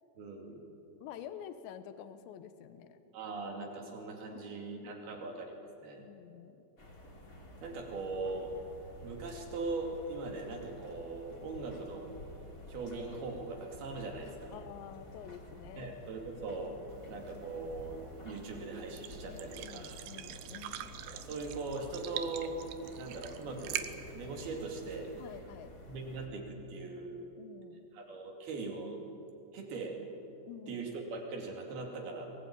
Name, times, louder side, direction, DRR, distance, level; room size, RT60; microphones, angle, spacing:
voice 1, 0.2-0.6 3.1-6.0 7.6-8.5 9.0-12.1 12.7-14.5 15.8-16.7 17.1-18.0 18.3-20.0 21.1-22.6 22.9-23.9 24.1-25.1 25.9-27.2 27.9-29.0 29.5-30.0 30.7-32.3, right 3 dB, 55° right, 2 dB, 4.1 m, -40 dB
voice 2, 1.0-3.0 4.3-5.3 6.0-6.6 14.5-16.0 19.3-20.9 25.2-25.8 27.4-27.9 30.5-30.9, left 9 dB, 70° left, 10 dB, 3.0 m, -49 dB
sound 1, 6.8-26.3, left 1 dB, 25° left, 2.3 m, -51 dB
sound 2, 16.9-25.4, right 12 dB, 75° right, 2.9 m, -45 dB
24.0 x 20.0 x 8.8 m, 2.8 s
omnidirectional pair, 5.9 m